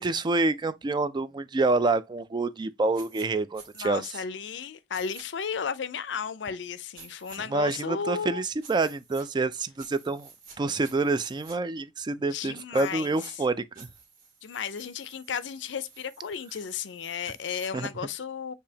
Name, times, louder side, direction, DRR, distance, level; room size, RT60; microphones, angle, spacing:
voice 1, 0.0-4.1 7.5-10.3 10.6-13.9 17.7-17.9, right 3 dB, 25° right, 0.3 m, -27 dB
sound 1, 2.9-3.3 3.5-3.9 4.9-5.2 6.9-7.4 8.6-9.3 9.8-10.6 10.8-11.6 12.7-13.3 13.7-17.7, right 5 dB, 55° right, 1.8 m, -51 dB
voice 2, 3.7-8.4 12.3-13.1 14.4-18.5, left 6 dB, 70° left, 0.5 m, -34 dB
6.8 x 2.8 x 2.7 m
head